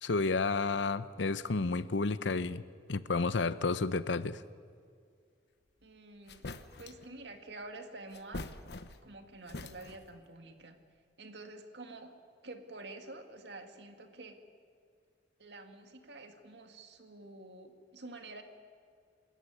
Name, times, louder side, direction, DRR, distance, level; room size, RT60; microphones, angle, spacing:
voice 1, 0.0-2.6 2.9-4.4, left 3 dB, 85° left, 15 dB, 0.8 m, -31 dB
sound 1, 5.8-5.9 6.3-7.1 8.1-9.2 9.5-10.2, left 2 dB, 65° left, 1.0 m, -44 dB
voice 2, 5.8-6.4 6.8-8.5 9.0-10.8 11.2-12.1 12.4-14.4 15.4-18.4, right 2 dB, 70° right, 5 dB, 2.1 m, -48 dB
27.0 x 13.5 x 9.6 m, 2.1 s
head